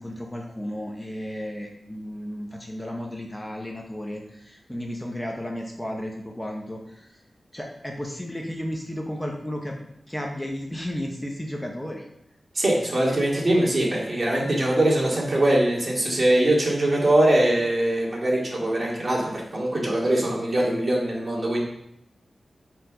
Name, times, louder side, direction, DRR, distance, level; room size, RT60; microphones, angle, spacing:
voice 1, 0.0-7.2 7.5-12.1, equal, 10° left, 1 dB, 1.0 m, -33 dB
voice 2, 12.5-21.6, right 1 dB, 45° right, -3 dB, 2.5 m, -22 dB
8.3 x 4.8 x 5.3 m, 0.78 s
wide cardioid pair, 100°, 0 cm